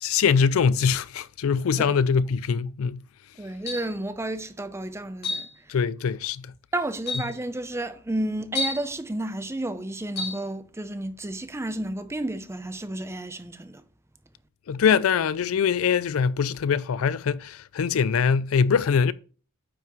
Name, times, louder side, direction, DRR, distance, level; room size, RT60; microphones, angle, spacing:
voice 1, 0.0-3.0 5.7-6.5 14.7-19.1, left 6 dB, 75° left, 0.4 m, -23 dB
voice 2, 3.4-5.5 6.7-13.8, right 1 dB, 15° right, 0.6 m, -31 dB
sound 1, 3.7-4.0 5.2-5.5 6.5-6.6 7.1-7.4 8.6-8.9 10.2-10.4, left 3 dB, 50° left, 1.7 m, -30 dB
9.2 x 5.8 x 3.1 m
head